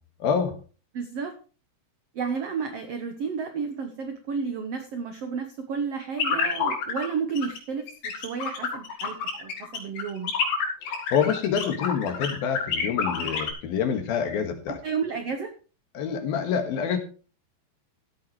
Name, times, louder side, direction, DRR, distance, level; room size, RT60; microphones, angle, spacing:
voice 1, 0.2-0.6 10.9-14.8 15.9-17.0, left 7 dB, 70° left, 6 dB, 3.4 m, -27 dB
voice 2, 0.9-1.3 2.1-10.3 14.8-15.5, right 5 dB, 75° right, 7 dB, 1.4 m, -32 dB
sound 1, 6.2-7.1 7.4-7.6 7.9-13.5, left 6 dB, 85° left, 4.8 m, -28 dB
15.5 x 9.4 x 3.2 m, 0.36 s
omnidirectional pair, 4.5 m